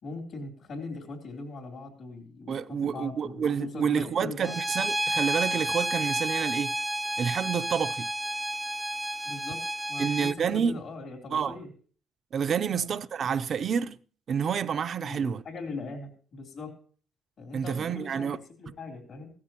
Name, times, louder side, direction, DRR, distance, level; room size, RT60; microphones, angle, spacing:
voice 1, 0.0-4.6 9.2-9.6 9.9-11.7 12.7-12.9 15.0-16.7 17.4-19.3, left 3 dB, 65° left, 3.3 m, -40 dB
voice 2, 2.5-6.7 7.2-8.1 10.0-10.8 11.3-11.5 12.3-14.0 14.3-15.4 17.5-18.4, right 7 dB, 55° right, 0.5 m, -29 dB
Bowed string instrument, 4.4-10.4, right 1 dB, 5° right, 0.5 m, -31 dB
16.5 x 13.5 x 2.9 m
cardioid pair, 90°, 0 cm